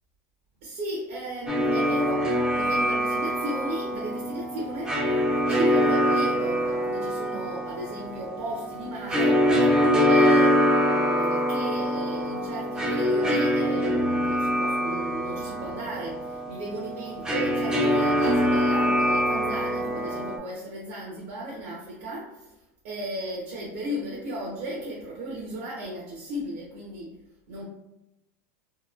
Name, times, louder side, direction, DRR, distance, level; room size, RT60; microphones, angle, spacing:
voice 1, 0.6-5.0 5.5-22.5 22.8-27.1 27.5-27.6, right 1 dB, 70° right, -4 dB, 0.7 m, -35 dB
sound 1, 1.5-20.4, equal, 10° right, 0.3 m, -24 dB
2.9 x 2.1 x 2.3 m, 0.88 s
supercardioid pair, 160°, 8 cm